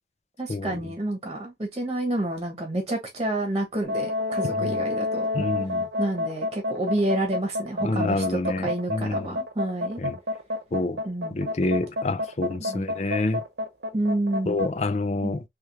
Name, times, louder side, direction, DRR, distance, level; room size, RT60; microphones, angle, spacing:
voice 1, 0.4-5.3 6.0-10.0 11.0-11.4 12.6-12.8 13.9-14.6 15.2-15.3, right 1 dB, 25° right, 1.2 m, -29 dB
sound 1, 3.8-14.7, left 2 dB, 70° right, 1.0 m, -29 dB
voice 2, 5.3-5.9 7.8-9.4 10.0-10.2 10.7-11.0 11.3-13.4 14.5-15.4, left 2 dB, 40° left, 0.5 m, -27 dB
3.4 x 3.2 x 3.0 m
head